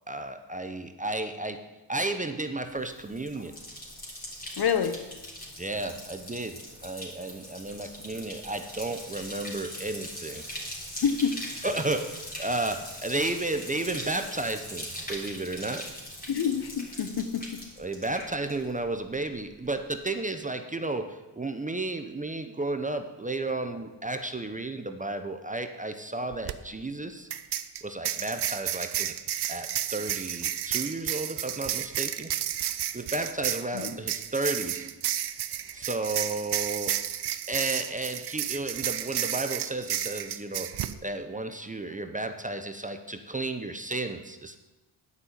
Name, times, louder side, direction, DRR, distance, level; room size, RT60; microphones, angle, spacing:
voice 1, 0.1-1.6 1.9-3.5 5.6-10.4 11.6-15.9 17.8-27.3 27.8-29.1 29.5-32.3 32.9-34.9 35.7-37.1 37.5-44.6, right 2 dB, 15° right, 7 dB, 0.7 m, -33 dB
Bathtub (filling or washing), 2.8-18.9 19.1-19.7, equal, 20° left, 3.2 m, -41 dB
voice 2, 4.6-5.0 11.0-11.4 16.3-17.6 33.7-33.9, left 7 dB, 50° left, 11 dB, 0.9 m, -27 dB
sound 1, 26.3-26.5 27.3-40.9, right 11 dB, 55° right, 0.7 m, -32 dB
9.7 x 5.6 x 8.2 m, 1.1 s
cardioid pair, 90°, 49 cm